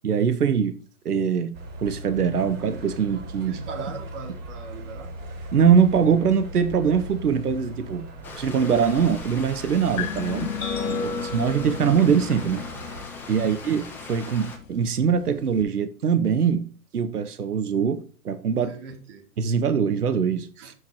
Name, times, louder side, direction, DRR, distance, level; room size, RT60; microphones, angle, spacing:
voice 1, 0.0-0.8 1.0-3.6 5.5-8.1 8.3-10.5 11.0-12.6 13.3-16.7 16.9-18.8 19.4-20.7, right 7 dB, 80° right, 1.0 m, -22 dB
sound 1, 1.5-13.0, right 1 dB, 30° right, 4.9 m, -39 dB
voice 2, 3.5-5.1 10.9-11.3 13.4-13.6 18.6-19.2 20.6-20.7, right 4 dB, 50° right, 3.3 m, -40 dB
Stream, 8.2-14.6, left 3 dB, 5° left, 0.4 m, -41 dB
sound 2, 10.0-15.6, left 6 dB, 60° left, 2.1 m, -34 dB
7.9 x 6.0 x 4.4 m
figure-of-eight pair, 115°, 45 cm